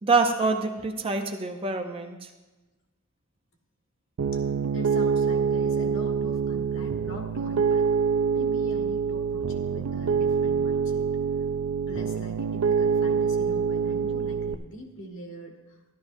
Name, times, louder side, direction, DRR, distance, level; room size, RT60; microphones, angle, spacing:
voice 1, 0.0-2.2, right 3 dB, 25° right, 5 dB, 0.6 m, -25 dB
Piano, 4.2-14.5, right 6 dB, 80° right, 0.4 m, -25 dB
voice 2, 4.7-11.0 11.9-15.8, equal, 60° left, 1 dB, 1.6 m, -42 dB
14.0 x 11.5 x 2.7 m, 1.2 s
head